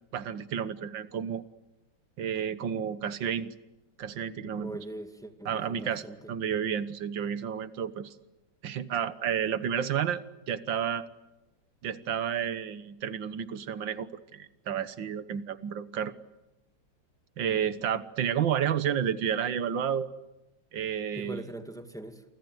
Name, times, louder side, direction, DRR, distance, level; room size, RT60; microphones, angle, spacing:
voice 1, 0.1-1.4 2.2-3.5 4.0-4.8 5.5-8.1 8.6-11.0 11.8-14.1 14.3-16.1 17.4-20.1 20.7-21.5, right 8 dB, 90° right, 14 dB, 1.9 m, -31 dB
voice 2, 4.5-6.3 21.2-22.2, right 1 dB, ahead, 7 dB, 2.0 m, -41 dB
29.0 x 24.5 x 8.0 m, 0.99 s
omnidirectional pair, 2.0 m